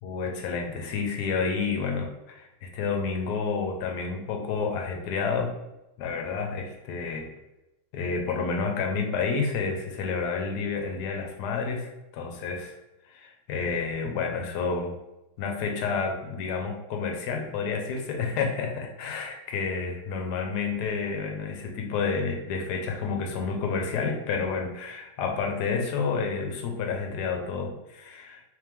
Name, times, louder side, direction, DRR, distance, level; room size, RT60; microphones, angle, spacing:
voice 1, 0.0-5.5 6.0-7.3 7.9-12.7 13.1-14.9 15.4-28.4, left 5 dB, 70° left, 2 dB, 1.0 m, -30 dB
3.2 x 3.2 x 3.4 m, 0.93 s
omnidirectional pair, 2.3 m